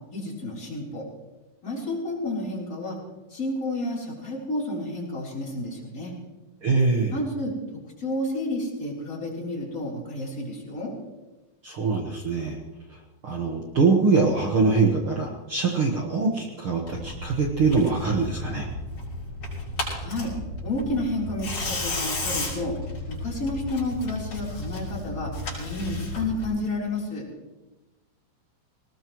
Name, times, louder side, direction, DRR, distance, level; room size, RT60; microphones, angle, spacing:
voice 1, 0.1-1.1 1.6-3.0 3.3-6.1 7.1-10.9 20.0-20.3 20.6-22.8 23.1-27.3, left 1 dB, 20° left, -4 dB, 3.8 m, -31 dB
voice 2, 6.6-7.2 11.6-12.6 13.2-18.7, right 4 dB, 60° right, 0 dB, 1.4 m, -23 dB
Tearing, 16.9-26.5, left 2 dB, 40° left, 6.6 m, -33 dB
19.5 x 19.5 x 3.1 m, 1.1 s
omnidirectional pair, 4.5 m